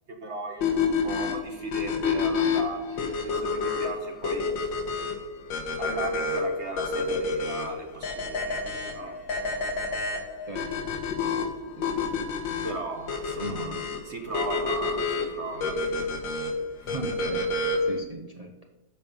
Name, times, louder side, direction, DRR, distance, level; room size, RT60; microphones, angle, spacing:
voice 1, 0.1-4.4 5.0-5.1 5.8-9.2 12.6-16.1 16.8-16.9, right 3 dB, 45° right, 4 dB, 1.1 m, -37 dB
sound 1, 0.6-18.0, left 4 dB, 70° left, 2.0 m, -29 dB
voice 2, 10.5-10.9 11.8-12.1 13.4-13.8 16.8-17.5 17.8-18.5, right 2 dB, 70° right, 2 dB, 0.3 m, -38 dB
13.5 x 5.4 x 5.4 m, 1.0 s
omnidirectional pair, 2.1 m